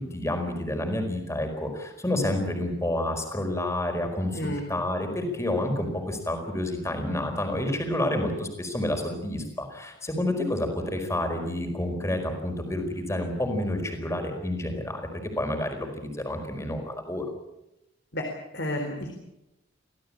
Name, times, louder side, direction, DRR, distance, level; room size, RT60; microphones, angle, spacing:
voice 1, 0.0-17.2, left 1 dB, 15° left, 5 dB, 4.7 m, -29 dB
voice 2, 4.3-4.7 18.1-18.3 18.5-19.1, left 1 dB, 55° left, 3 dB, 4.1 m, -31 dB
26.5 x 16.5 x 8.8 m, 0.91 s
head